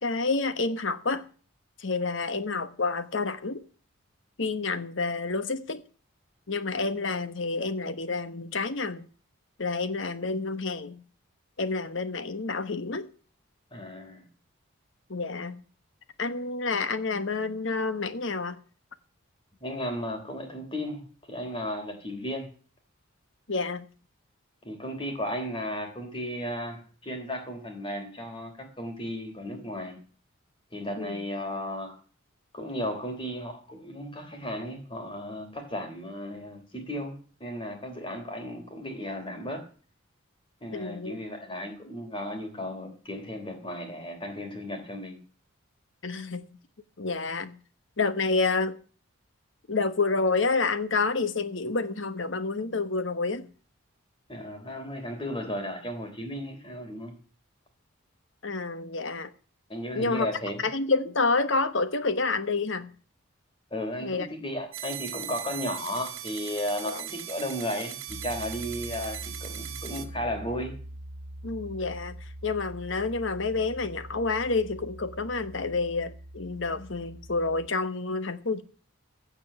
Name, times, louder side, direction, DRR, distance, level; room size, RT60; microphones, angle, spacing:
voice 1, 0.0-1.2 1.8-3.6 4.4-5.8 6.5-9.0 9.6-11.0 11.6-13.1 15.1-15.6 16.2-18.6 23.5-23.8 31.0-31.3 40.7-41.1 46.0-46.5 47.0-47.6 48.0-48.7 49.7-53.5 58.4-59.3 59.9-60.3 60.6-62.9 64.0-64.3 66.8-67.0 71.4-72.2 72.4-78.6, left 3 dB, 60° left, 1.1 m, -29 dB
voice 2, 13.7-14.3 19.6-22.5 24.6-30.0 30.7-32.0 32.5-39.6 40.6-45.2 54.3-57.1 59.7-60.6 63.7-70.8, equal, 25° left, 3.5 m, -35 dB
sound 1, 64.7-70.1, right 11 dB, 70° right, 1.9 m, -39 dB
Piano, 68.1-77.7, right 1 dB, 90° right, 1.5 m, -43 dB
16.0 x 5.4 x 8.8 m
head